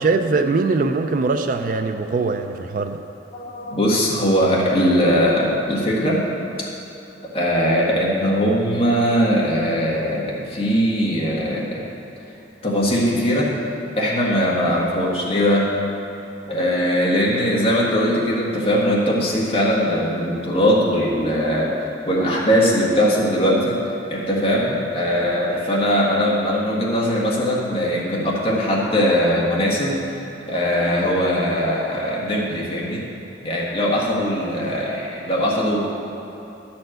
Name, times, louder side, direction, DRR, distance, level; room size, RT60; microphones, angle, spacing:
voice 1, 0.0-3.0, right 3 dB, 45° right, 7 dB, 0.3 m, -21 dB
voice 2, 3.3-6.2 6.6-6.7 7.3-11.8 12.6-13.5 13.9-15.7 16.5-21.8 22.1-23.8 24.1-30.2 30.5-33.0 33.4-35.8, equal, 30° left, -5 dB, 1.7 m, -20 dB
10.5 x 4.4 x 7.7 m, 3.0 s
head